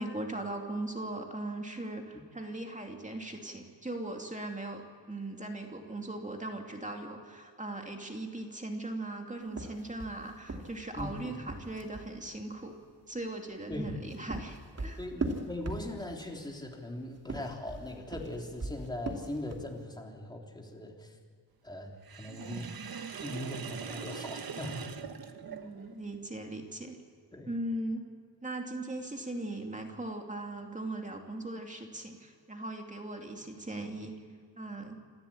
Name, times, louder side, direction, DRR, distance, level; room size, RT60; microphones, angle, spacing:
voice 1, 0.0-12.8 13.1-15.0 25.5-27.0 27.5-28.0 28.4-34.2 34.6-34.9, right 2 dB, 15° right, 3 dB, 2.6 m, -39 dB
sound 1, 9.5-12.1 13.8-16.3 17.1-19.8, right 2 dB, 35° right, 2.7 m, -39 dB
voice 2, 11.0-11.3 13.7-14.0 15.0-21.1 21.6-22.7 23.2-24.9 27.3-27.5, left 1 dB, 10° left, 0 dB, 3.4 m, -40 dB
Sink (filling or washing), 22.0-26.0, right 7 dB, 55° right, 1.4 m, -42 dB
27.5 x 13.0 x 8.8 m, 2.1 s
cardioid pair, 90°, 42 cm